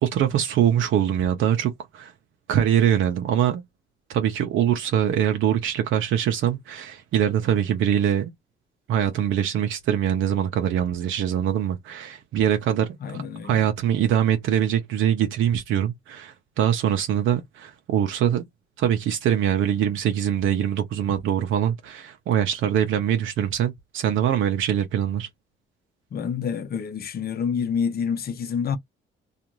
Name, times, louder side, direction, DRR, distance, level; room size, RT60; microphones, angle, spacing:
voice 1, 0.0-2.1 2.5-3.6 4.1-8.3 8.9-13.2 13.5-18.4 18.8-25.3, right 10 dB, 80° right, 0.6 m, -23 dB
voice 2, 13.0-13.6 26.1-28.8, left 7 dB, 50° left, 0.7 m, -27 dB
2.5 x 2.4 x 2.9 m
cardioid pair, 90°, 20 cm